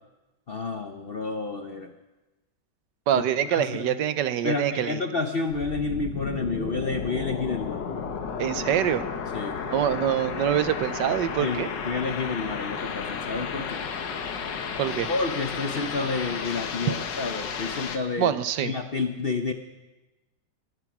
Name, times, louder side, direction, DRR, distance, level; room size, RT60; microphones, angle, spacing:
voice 1, 0.5-1.9 3.5-4.0 4.4-7.8 9.3-9.6 11.4-13.8 15.1-18.3 18.6-19.5, left 4 dB, 50° left, 6 dB, 0.7 m, -30 dB
voice 2, 3.1-5.0 8.4-9.1 9.7-11.7 14.8-15.1 18.2-18.7, right 10 dB, 80° right, 13 dB, 1.4 m, -25 dB
sound 1, 5.5-18.0, left 6 dB, 80° left, 1.8 m, -33 dB
22.0 x 9.6 x 6.1 m, 1.1 s
omnidirectional pair, 1.9 m